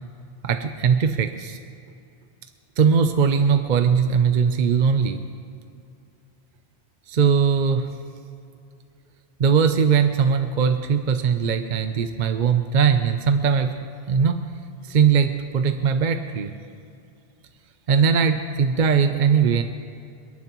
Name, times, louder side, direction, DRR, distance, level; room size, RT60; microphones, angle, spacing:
voice 1, 0.4-1.6 2.8-5.2 7.1-7.9 9.4-13.8 14.1-14.4 14.8-16.5 17.9-19.6, right 6 dB, 50° right, 7 dB, 0.7 m, -20 dB
27.5 x 11.0 x 3.0 m, 2.5 s
omnidirectional pair, 1.1 m